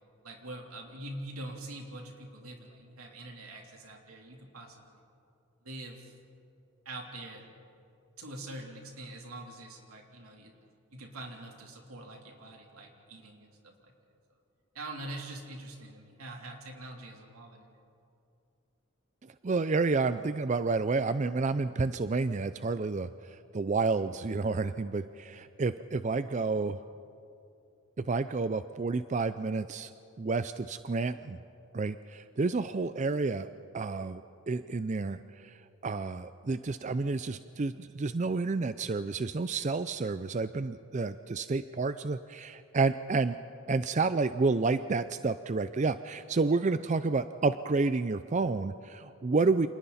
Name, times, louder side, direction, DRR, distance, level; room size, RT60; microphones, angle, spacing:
voice 1, 0.2-5.0 5.6-6.1 6.8-7.5 8.2-10.5 10.9-13.5 13.8-13.9 14.7-17.7, right 1 dB, 85° right, 0 dB, 3.4 m, -44 dB
voice 2, 19.4-26.8 28.0-29.9 30.2-31.4 31.7-43.4 43.7-49.7, right 3 dB, 35° right, 12 dB, 0.4 m, -30 dB
29.5 x 27.0 x 4.2 m, 2.7 s
head